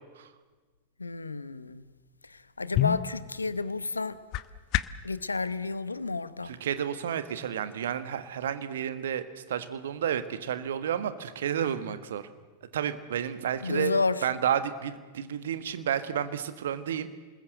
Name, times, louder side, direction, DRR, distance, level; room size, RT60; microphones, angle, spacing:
voice 1, 1.0-1.9 2.2-4.2 5.0-6.5 13.6-14.3, left 3 dB, 80° left, 0.9 m, -31 dB
sound 1, 2.3-5.1, left 15 dB, 40° left, 0.7 m, -31 dB
voice 2, 6.4-12.2 12.7-13.9 14.2-17.1, right 9 dB, 60° right, 1.5 m, -31 dB
28.0 x 20.5 x 8.0 m
figure-of-eight pair, 90°, 0 cm